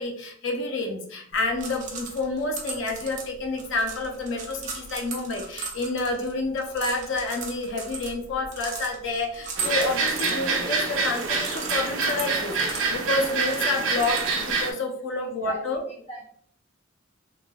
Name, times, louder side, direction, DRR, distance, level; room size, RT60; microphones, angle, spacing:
voice 1, 0.0-15.8, left 2 dB, 70° left, 3 dB, 0.5 m, -29 dB
sound 1, 1.3-14.6, right 4 dB, 40° right, 0.6 m, -38 dB
sound 2, 9.6-14.7, right 4 dB, 85° right, 0.6 m, -26 dB
voice 2, 15.2-15.6 15.9-16.2, right 1 dB, 30° left, -3 dB, 1.0 m, -38 dB
3.2 x 2.6 x 2.2 m, 0.63 s
head